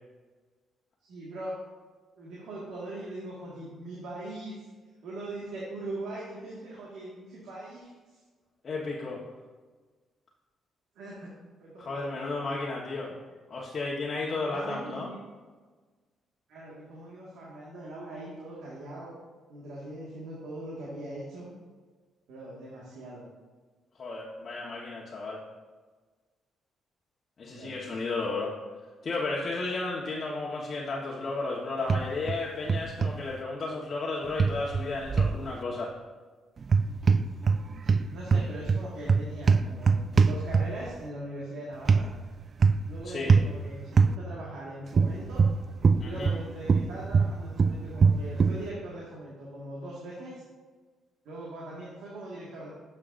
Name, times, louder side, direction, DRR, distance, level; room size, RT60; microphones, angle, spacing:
voice 1, 1.1-1.5 2.1-4.7 5.0-8.2 10.9-11.3 11.6-12.6 14.3-15.2 16.5-19.2 19.5-21.5 22.3-23.2 27.5-27.9 30.6-30.7 37.8-39.9 40.2-42.1 42.8-45.5 46.0-50.4 51.2-52.7, right 1 dB, 80° right, -6 dB, 1.7 m, -41 dB
voice 2, 8.6-9.2 11.8-13.1 13.5-15.1 24.0-25.4 27.4-28.5 29.0-35.9 38.3-38.4 43.0-43.3 46.0-46.3, left 3 dB, 45° left, -4 dB, 1.2 m, -33 dB
sound 1, 31.9-32.4 32.7-33.1 34.4-35.4 36.6-37.6 37.9-40.9 41.9-42.1 42.6-42.9 43.3-43.5 44.0-44.1 44.9-46.4 46.7-48.6, right 5 dB, 45° right, 0.3 m, -22 dB
9.9 x 6.7 x 2.6 m, 1.4 s
cardioid pair, 90°, 0 cm